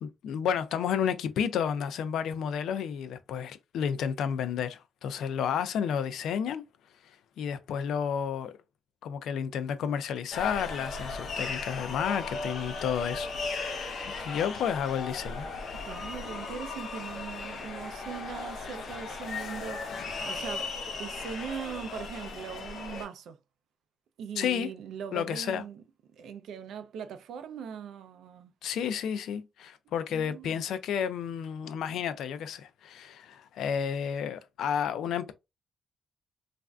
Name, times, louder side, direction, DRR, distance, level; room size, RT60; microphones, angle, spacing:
voice 1, 0.0-6.6 7.4-8.6 9.0-13.3 13.6-13.8 14.2-15.5 24.4-24.7 25.1-25.6 28.6-35.3, left 8 dB, 90° left, 0.4 m, -31 dB
sound 1, 10.3-23.1, left 4 dB, 50° left, 0.6 m, -37 dB
voice 2, 15.7-19.8 20.3-20.7 21.0-23.4 24.2-25.8 26.1-28.5 30.1-30.6, right 7 dB, 80° right, 0.4 m, -40 dB
3.2 x 2.5 x 2.3 m
wide cardioid pair, 180°, 0 cm